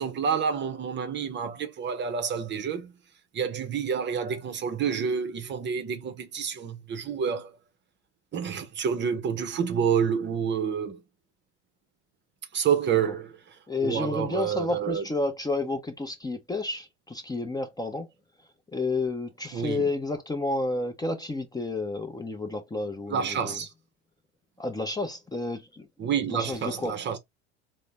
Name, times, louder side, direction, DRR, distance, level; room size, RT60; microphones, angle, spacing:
voice 1, 0.0-2.9 3.3-7.6 8.3-11.0 12.5-15.0 19.5-19.9 23.1-23.7 26.0-27.2, right 7 dB, 35° right, 0.8 m, -28 dB
voice 2, 13.7-18.1 18.7-23.6 24.6-25.9 26.3-26.9, left 2 dB, 10° left, 0.7 m, -31 dB
3.9 x 2.1 x 3.3 m
hypercardioid pair, 85°, 34 cm